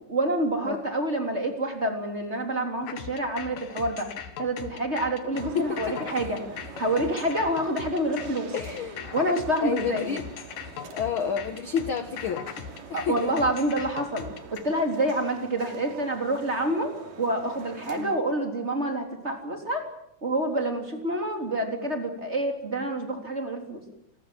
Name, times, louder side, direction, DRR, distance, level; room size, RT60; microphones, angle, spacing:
voice 1, 0.1-4.1 4.4-6.4 6.8-8.5 9.1-10.1 12.9-14.3 14.6-16.9 17.2-19.8 20.2-23.8, right 1 dB, 20° right, 4 dB, 3.5 m, -27 dB
sound 1, 2.8-14.6, left 8 dB, 75° left, 3.3 m, -39 dB
sound 2, 5.3-18.2, right 6 dB, 80° right, 4.2 m, -44 dB
voice 2, 5.5-6.3 8.5-9.1 9.6-10.3 10.7-12.5 12.9-13.3 17.9-18.2, left 7 dB, 55° left, 10 dB, 1.5 m, -30 dB
28.0 x 21.0 x 7.7 m, 0.77 s
omnidirectional pair, 3.8 m